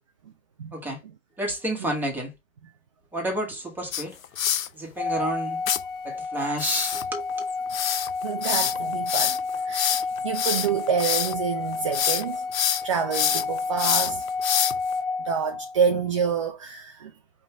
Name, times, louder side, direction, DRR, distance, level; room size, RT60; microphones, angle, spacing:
voice 1, 1.4-2.3 3.1-4.2 4.7-5.6 6.0-7.2, right 1 dB, 5° right, 1.3 m, -30 dB
sound 1, 3.9-4.7 5.7-5.8 6.6-11.4 11.7-12.2 12.5-14.9, left 9 dB, 80° left, 0.6 m, -26 dB
Organ, 5.0-15.8, left 4 dB, 45° left, 0.5 m, -31 dB
voice 2, 8.2-9.4 9.6-12.4 12.8-14.3 14.9-17.1, right 6 dB, 25° right, 0.4 m, -28 dB
5.5 x 2.6 x 3.4 m
hypercardioid pair, 130°, 41 cm